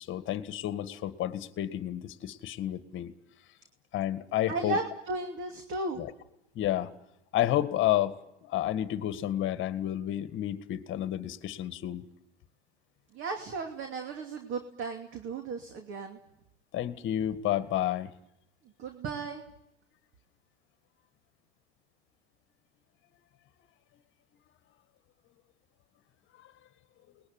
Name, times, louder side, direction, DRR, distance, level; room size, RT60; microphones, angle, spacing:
voice 1, 0.0-3.1 3.9-4.8 5.9-6.1 6.6-6.9 7.3-8.2 8.4-12.0 16.7-18.1 26.4-26.5, left 12 dB, 35° left, 12 dB, 1.9 m, -30 dB
voice 2, 4.5-6.0 13.1-16.2 18.8-19.4, right 3 dB, 35° right, 5 dB, 2.7 m, -35 dB
29.0 x 20.5 x 9.6 m, 0.87 s
hypercardioid pair, 110°, 35 cm